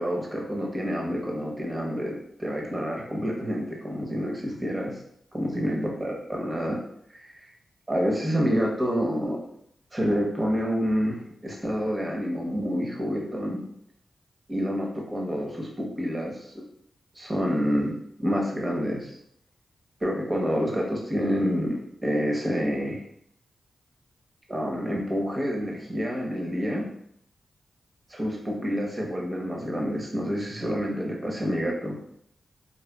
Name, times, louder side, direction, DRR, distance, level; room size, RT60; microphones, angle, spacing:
voice 1, 0.0-5.0 5.3-6.8 7.1-7.5 7.9-9.4 9.9-13.6 14.5-16.5 17.2-17.9 18.2-19.1 20.0-21.8 22.0-23.0 24.5-26.8 28.1-32.0, equal, 30° right, -1 dB, 0.8 m, -28 dB
3.9 x 2.1 x 2.2 m, 0.71 s
cardioid pair, 50°, 0 cm